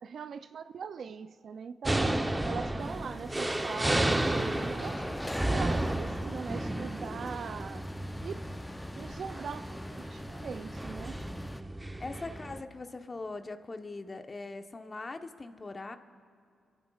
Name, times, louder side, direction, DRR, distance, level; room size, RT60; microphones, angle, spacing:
voice 1, 0.0-2.1 2.5-5.0 5.4-7.8 8.2-8.4 9.0-11.2, right 6 dB, 65° right, 0.4 m, -41 dB
sound 1, 1.9-12.6, right 1 dB, 20° right, 0.8 m, -33 dB
sound 2, 2.8-11.6, left 1 dB, 15° left, 0.5 m, -43 dB
voice 2, 12.0-16.0, left 3 dB, 35° left, 1.0 m, -41 dB
28.5 x 15.0 x 2.4 m
supercardioid pair, 45°, 0 cm